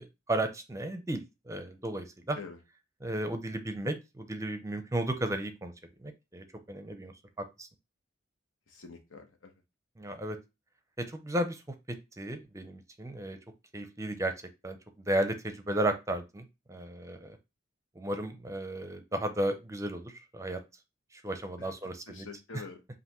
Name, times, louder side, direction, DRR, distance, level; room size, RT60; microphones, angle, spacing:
voice 1, 0.0-2.4 3.0-5.7 6.0-7.7 10.0-10.4 11.0-11.6 11.9-13.4 13.7-14.3 14.6-17.4 18.0-20.6 21.1-22.2, right 1 dB, 15° right, 8 dB, 0.5 m, -34 dB
voice 2, 8.7-9.5 21.6-22.8, left 4 dB, 85° left, 4 dB, 1.0 m, -46 dB
5.5 x 2.6 x 2.9 m, 0.25 s
head